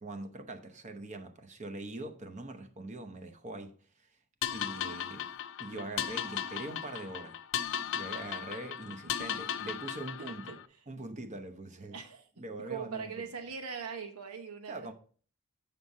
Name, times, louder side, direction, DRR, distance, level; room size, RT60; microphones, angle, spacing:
voice 1, 0.0-3.8 4.5-5.3 5.6-7.4 7.9-10.6 10.9-12.0 12.4-13.2 14.7-14.9, right 2 dB, 30° right, 0.8 m, -42 dB
sound 1, 4.4-10.7, left 9 dB, 60° left, 0.5 m, -37 dB
voice 2, 10.2-10.6 11.9-12.3 12.6-14.9, right 5 dB, 80° right, 1.0 m, -41 dB
8.3 x 5.7 x 3.7 m
head